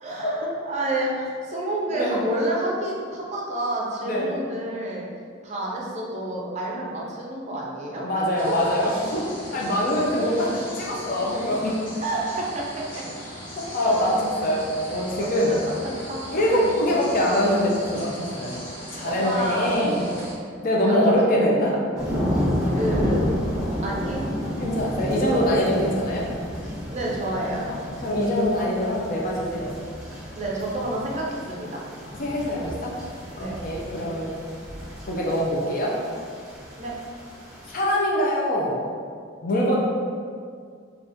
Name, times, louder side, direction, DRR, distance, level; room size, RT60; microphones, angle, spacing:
voice 1, 0.0-5.1 5.4-8.0 8.5-8.6 9.5-9.6 12.0-12.8 13.8-14.3 15.2-16.8 19.0-19.8 20.8-21.8 22.7-23.3 23.8-24.3 25.3-26.0 26.9-27.7 30.4-31.8 33.3-33.6 36.8-36.9, right 1 dB, 35° right, -3 dB, 0.5 m, -29 dB
voice 2, 4.0-4.3 8.0-9.2 9.5-11.8 13.7-15.5 16.3-18.6 18.9-20.1 20.6-21.7 24.6-26.3 27.7-29.8 32.2-32.9 33.6-34.3 35.1-36.0 37.7-38.8 39.4-39.8, equal, 45° left, -3 dB, 0.5 m, -23 dB
sound 1, 8.4-20.3, equal, 65° left, 1.1 m, -39 dB
sound 2, 21.9-37.8, equal, 5° right, 0.7 m, -31 dB
3.4 x 2.4 x 2.6 m, 2.1 s
head